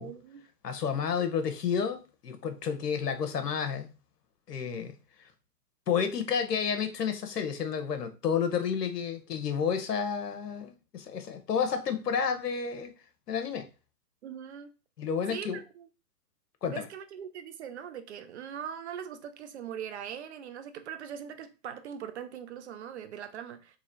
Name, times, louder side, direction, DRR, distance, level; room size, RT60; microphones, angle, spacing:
voice 1, 0.0-0.5 14.2-14.7 15.3-15.5 15.8-15.9 16.6-23.8, right 8 dB, 45° right, 0.6 m, -41 dB
voice 2, 0.6-3.9 4.5-4.9 5.9-12.9 13.3-13.7 15.0-15.6 16.6-16.9, left 7 dB, 75° left, 1.0 m, -30 dB
3.1 x 2.8 x 3.9 m
hypercardioid pair, 130°, 49 cm